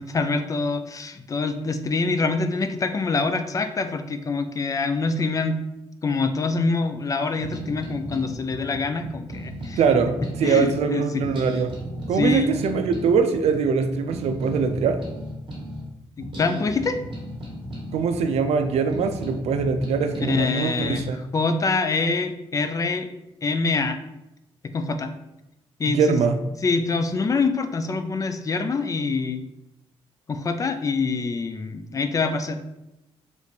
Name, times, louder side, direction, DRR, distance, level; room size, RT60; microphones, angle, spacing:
voice 1, 0.0-5.6 6.0-9.8 10.4-11.2 12.1-12.5 16.2-17.0 20.3-23.1 23.4-24.0 24.6-25.1 25.8-26.2 26.6-29.4 30.3-32.6, left 4 dB, 30° left, 8 dB, 0.4 m, -25 dB
sound 1, 7.3-10.8 11.2-15.9 16.2-20.4 20.8-21.0, equal, 50° right, 1.4 m, -35 dB
voice 2, 9.8-11.7 12.1-15.0 17.9-21.2 25.9-26.4, right 5 dB, 80° right, 7 dB, 0.4 m, -22 dB
4.1 x 3.2 x 3.2 m, 0.91 s
cardioid pair, 110°, 11 cm